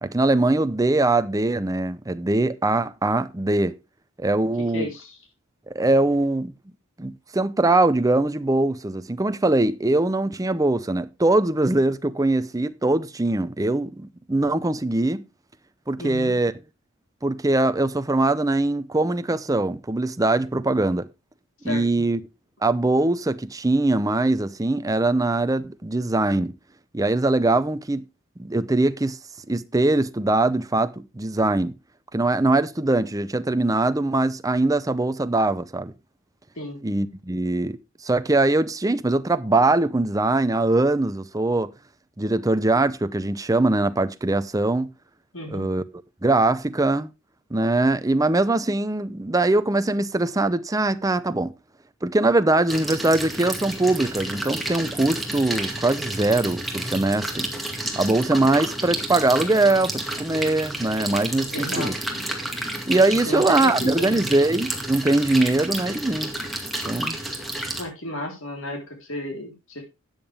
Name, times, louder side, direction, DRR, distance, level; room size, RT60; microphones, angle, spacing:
voice 1, 0.0-3.7 4.2-4.9 5.7-6.5 7.0-15.2 15.9-16.5 17.2-21.1 21.6-22.2 22.6-26.5 26.9-28.0 28.4-29.2 29.5-31.7 32.1-35.9 36.8-37.8 38.0-41.7 42.2-44.9 45.5-45.8 46.2-47.1 47.5-51.5 52.0-57.5 58.0-62.0 62.9-66.3 66.9-67.2, right 2 dB, 15° right, 0.6 m, -22 dB
voice 2, 4.6-5.2 16.0-16.3 21.6-21.8 36.6-36.8 45.3-45.7 61.4-61.9 63.2-64.2 67.7-69.8, left 1 dB, 60° left, 4.0 m, -33 dB
sound 1, 52.7-67.8, right 1 dB, ahead, 2.1 m, -31 dB
12.5 x 8.9 x 3.5 m
head